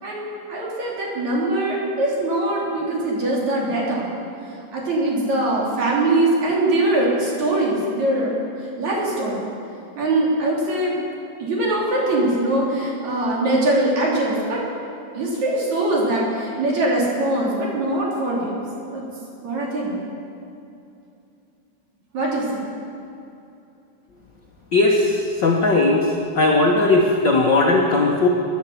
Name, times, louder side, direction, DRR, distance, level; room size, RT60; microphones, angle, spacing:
voice 1, 0.0-4.1 4.7-8.4 8.8-9.4 10.0-10.9 11.4-14.6 15.1-18.6 18.9-19.0 19.4-20.0 22.1-22.6, right 1 dB, 55° right, -3 dB, 4.3 m, -22 dB
voice 2, 24.7-28.3, left 2 dB, 85° left, -1 dB, 0.9 m, -18 dB
19.0 x 10.5 x 7.1 m, 2.7 s
omnidirectional pair, 4.0 m